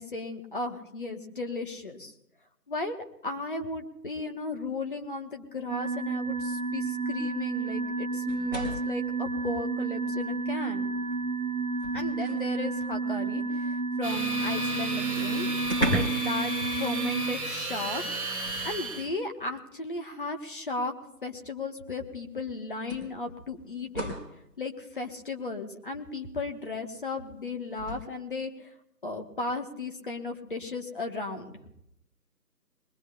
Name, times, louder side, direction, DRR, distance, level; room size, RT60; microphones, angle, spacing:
voice 1, 0.0-2.1 2.7-2.9 3.2-10.9 11.9-15.5 15.9-18.0 18.6-20.9 21.2-24.2 24.6-28.7 29.0-31.5, left 3 dB, 30° left, 3 dB, 1.1 m, -35 dB
sound 1, 5.7-17.3, right 4 dB, 55° right, 0.7 m, -31 dB
sound 2, 8.3-9.0 10.3-10.4 10.9-12.5 14.6-14.7 14.9-15.0 15.6-16.3 16.6-16.9 18.4-19.1 20.3-20.4 21.9-22.0 22.9-24.4 27.7-28.0, equal, 15° left, 2.7 m, -34 dB
sound 3, 14.0-19.1, right 2 dB, 20° right, 1.5 m, -34 dB
22.0 x 18.5 x 2.3 m, 0.79 s
figure-of-eight pair, 160°, 50 cm